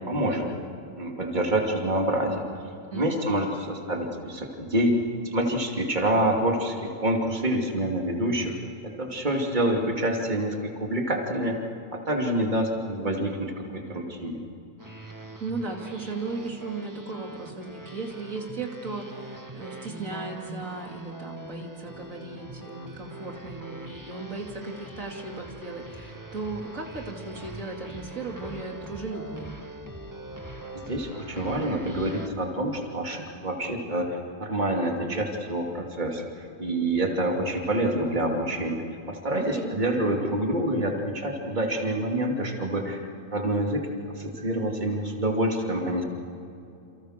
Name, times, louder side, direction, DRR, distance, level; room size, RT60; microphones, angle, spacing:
voice 1, 0.1-0.5 1.0-2.6 2.9-5.0 5.2-8.5 9.0-11.6 11.9-14.4 30.7-43.0 43.3-46.0, right 1 dB, 30° right, 1 dB, 3.0 m, -27 dB
voice 2, 2.9-3.3 15.4-29.5 39.3-39.7, right 3 dB, 65° right, 0 dB, 3.0 m, -36 dB
sound 1, 14.8-32.3, right 1 dB, 15° right, 1.7 m, -42 dB
29.5 x 28.5 x 6.6 m, 2.8 s
omnidirectional pair, 1.5 m